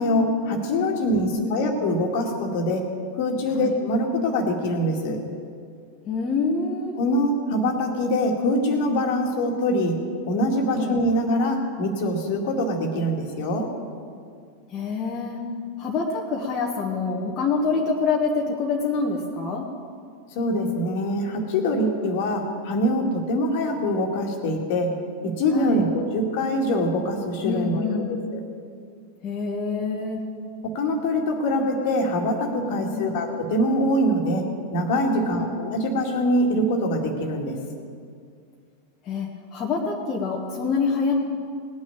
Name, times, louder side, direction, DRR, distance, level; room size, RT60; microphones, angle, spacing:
voice 1, 0.0-2.8 3.2-5.2 7.0-9.9 10.3-13.7 20.3-24.9 25.2-28.4 30.6-34.4 34.7-37.6, left 1 dB, 50° left, 2 dB, 2.1 m, -24 dB
voice 2, 1.0-1.7 3.5-3.7 6.1-6.9 10.7-11.0 14.7-15.4 15.8-19.7 25.5-25.8 27.4-28.1 29.2-30.2 32.6-33.1 35.1-35.5 39.0-41.1, left 4 dB, 30° left, -1 dB, 1.5 m, -26 dB
19.0 x 6.4 x 8.6 m, 2.2 s
figure-of-eight pair, 90°, 0 cm